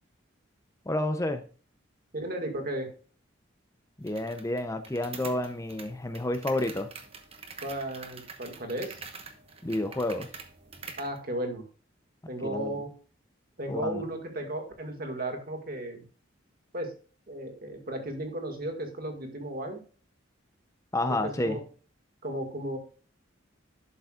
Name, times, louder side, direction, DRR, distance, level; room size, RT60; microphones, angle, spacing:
voice 1, 0.9-1.4 4.0-6.9 9.6-10.3 12.4-12.7 13.7-14.0 20.9-21.6, left 1 dB, 15° left, 8 dB, 0.6 m, -30 dB
voice 2, 2.1-2.9 7.6-9.0 11.0-11.6 12.3-12.9 13.6-16.0 16.7-16.9 17.3-19.8 21.1-21.6 22.2-22.8, right 1 dB, 50° right, 3 dB, 2.0 m, -34 dB
sound 1, 4.1-11.2, right 5 dB, 30° right, 1.1 m, -46 dB
11.5 x 6.9 x 2.4 m, 0.39 s
head